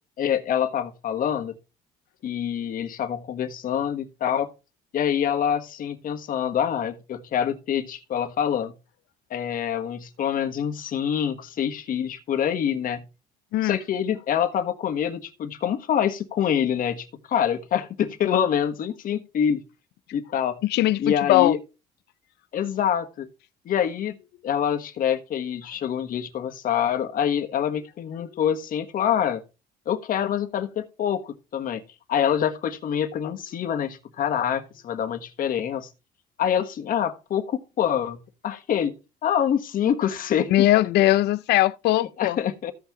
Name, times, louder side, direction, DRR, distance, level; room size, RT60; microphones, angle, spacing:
voice 1, 0.2-1.5 2.2-4.5 4.9-8.7 9.3-13.0 13.6-19.6 20.1-20.6 21.0-21.6 22.5-23.3 23.6-24.1 24.4-29.4 29.8-31.8 32.1-35.9 36.4-38.9 39.2-40.7 42.0-42.7, left 9 dB, 55° left, 1.4 m, -26 dB
voice 2, 20.6-21.6 40.5-42.4, left 15 dB, 75° left, 0.5 m, -20 dB
15.0 x 5.8 x 3.1 m
cardioid pair, 110°, 17 cm